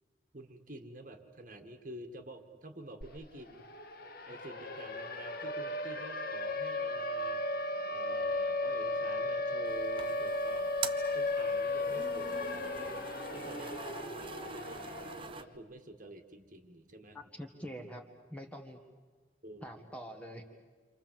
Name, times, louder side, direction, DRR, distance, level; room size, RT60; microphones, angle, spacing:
voice 1, 0.3-3.7 4.3-7.4 7.9-10.8 11.1-13.0 13.3-17.2 19.4-19.8, right 1 dB, 45° right, 6 dB, 1.9 m, -49 dB
Siren, 3.0-3.1 3.4-15.4, left 2 dB, 50° left, 1.7 m, -35 dB
sound 1, 9.7-15.4, right 5 dB, 25° right, 0.8 m, -44 dB
voice 2, 17.1-18.0 18.3-18.8 19.6-20.4, equal, 5° left, 3 dB, 1.7 m, -45 dB
29.0 x 26.5 x 7.6 m, 1.5 s
head